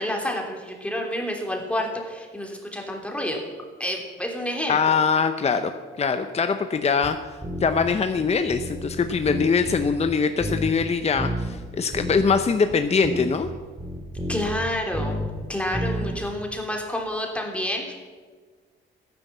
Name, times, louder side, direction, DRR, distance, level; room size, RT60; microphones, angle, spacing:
voice 1, 0.0-3.4 3.8-4.9 14.3-15.2 15.5-17.9, left 1 dB, 5° left, 0 dB, 3.4 m, -29 dB
voice 2, 4.7-5.7 6.0-7.2 7.6-13.5, left 5 dB, 30° left, 8 dB, 0.9 m, -22 dB
sound 1, 7.0-7.1 7.4-7.9 8.2-10.1 10.4-10.9 11.2-11.6 11.9-12.2 12.7-12.8 13.0-15.4 15.7-16.2, equal, 20° right, 3.3 m, -30 dB
13.0 x 11.0 x 7.4 m, 1.5 s
cardioid pair, 90°, 20 cm